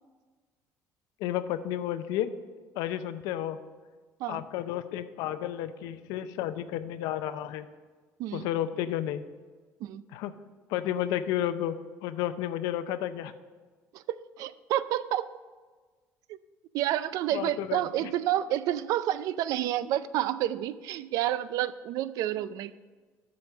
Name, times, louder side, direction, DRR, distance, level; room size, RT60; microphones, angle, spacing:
voice 1, 1.2-2.3 2.8-3.6 4.3-7.7 8.3-9.2 10.1-10.3 10.7-13.3 17.3-18.1, left 11 dB, 85° left, 12 dB, 0.5 m, -32 dB
voice 2, 13.9-15.3 16.7-22.7, right 12 dB, 70° right, 16 dB, 0.4 m, -29 dB
7.5 x 5.2 x 7.2 m, 1.4 s
cardioid pair, 130°, 6 cm